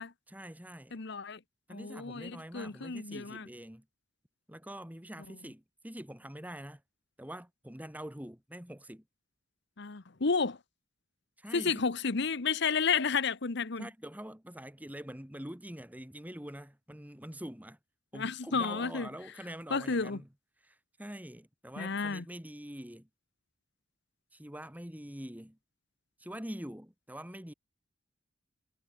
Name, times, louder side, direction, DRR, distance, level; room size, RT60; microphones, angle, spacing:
voice 1, 0.3-1.0 1.7-3.8 4.5-6.8 7.2-9.0 11.4-11.9 13.8-17.8 18.1-20.3 20.6-23.1 24.3-25.6 26.2-27.5, equal, 10° right, 2.6 m, -45 dB
voice 2, 0.9-1.4 1.7-3.5 9.8-10.6 11.5-13.9 18.1-19.1 19.7-20.2 21.8-22.2, left 5 dB, 60° left, 1.0 m, -31 dB
head